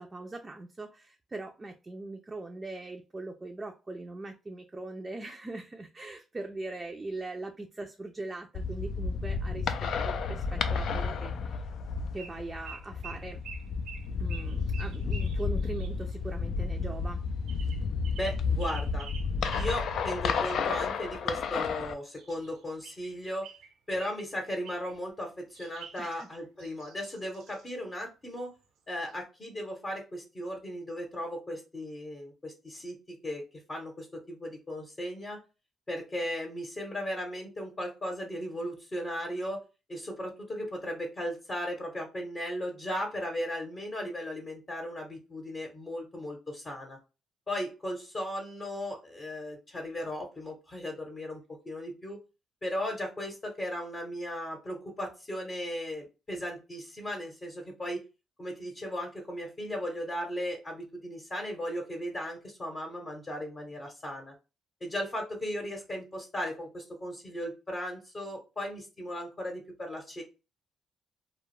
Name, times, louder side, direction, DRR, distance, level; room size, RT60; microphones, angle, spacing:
voice 1, 0.0-11.7 12.1-13.4 14.2-17.2 26.0-26.3, right 2 dB, 25° right, 3 dB, 0.4 m, -41 dB
sound 1, 8.5-21.9, left 5 dB, 70° left, 0.3 m, -32 dB
sound 2, 12.2-12.4 12.6-16.0 17.5-19.8 20.4-21.3 22.1-23.1 23.4-24.3 24.6-25.0 25.5-27.7 28.6-28.7 28.9-29.2, right 6 dB, 90° right, 0.5 m, -48 dB
voice 2, 18.1-19.1 19.5-23.5 23.9-28.5 28.9-33.4 33.7-35.4 35.9-39.6 39.9-47.0 47.5-52.2 52.6-58.0 58.4-64.3 64.8-70.2, equal, 30° left, 1 dB, 0.8 m, -36 dB
2.2 x 2.1 x 3.0 m, 0.29 s
cardioid pair, 90°, 0 cm